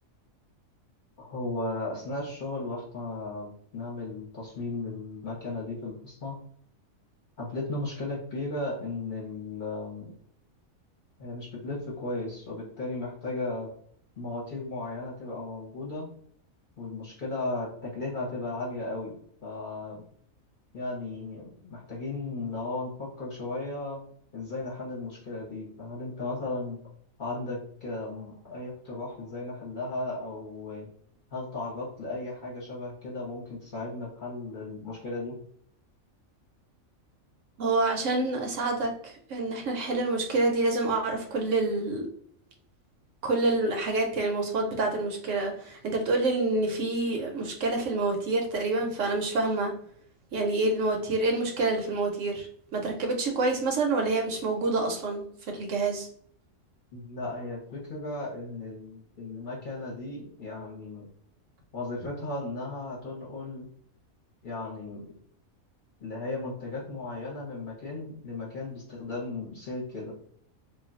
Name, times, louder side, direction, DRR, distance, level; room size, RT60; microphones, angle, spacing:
voice 1, 1.2-6.4 7.4-10.1 11.2-13.7 14.2-16.1 16.8-19.2 19.4-20.0 20.7-24.0 24.3-26.8 27.2-30.9 31.3-35.4 56.9-61.1 61.7-63.7 64.4-65.1 66.0-70.1, left 2 dB, 45° left, -5 dB, 0.9 m, -35 dB
voice 2, 37.6-42.1 43.2-49.7 50.3-52.5 52.7-56.1, right 2 dB, 70° right, 2 dB, 0.9 m, -27 dB
2.4 x 2.2 x 3.7 m, 0.62 s
omnidirectional pair, 1.4 m